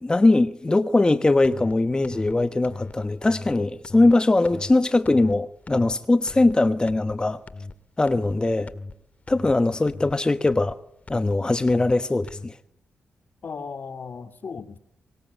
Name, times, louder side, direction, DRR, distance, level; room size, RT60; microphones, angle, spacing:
voice 1, 0.0-7.4 8.0-8.7 9.3-10.8 11.1-12.6, left 2 dB, 25° left, 1.1 m, -21 dB
sound 1, 1.4-1.7 2.0-2.3 2.6-2.9 3.2-3.5 3.8-4.1 4.4-4.7 5.0-5.3 5.7-5.9 6.3-6.5 6.9-7.1 7.5-7.7 8.1-8.3 8.7-8.9 9.3-9.5 9.9-10.1 10.5-10.7 11.1-11.3 11.7-11.9 12.3-12.5, left 3 dB, 40° left, 1.9 m, -38 dB
voice 2, 13.4-14.8, left 5 dB, 60° left, 2.4 m, -37 dB
24.5 x 20.5 x 9.2 m
cardioid pair, 70°, 4 cm